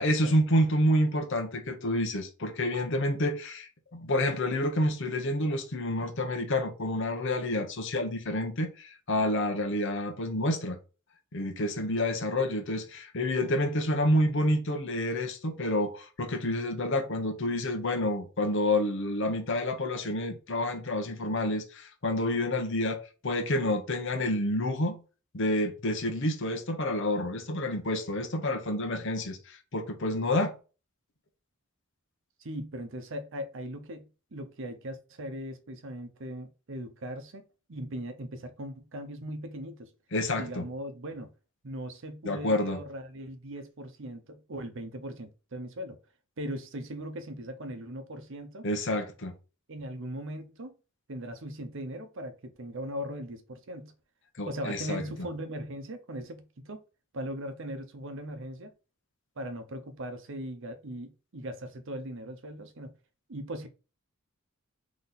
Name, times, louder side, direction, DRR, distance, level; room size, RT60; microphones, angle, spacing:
voice 1, 0.0-10.8 11.3-25.0 25.3-30.6 40.1-40.6 42.2-42.8 48.6-49.3 54.4-55.3, left 1 dB, 60° left, 0.9 m, -29 dB
voice 2, 32.4-37.4 37.7-39.9 40.4-41.3 41.6-46.0 46.4-48.6 49.7-50.7 51.1-53.9 54.5-56.8 57.1-58.7 59.4-62.9 63.3-63.7, right 1 dB, 65° right, 0.7 m, -39 dB
4.0 x 3.1 x 4.0 m
head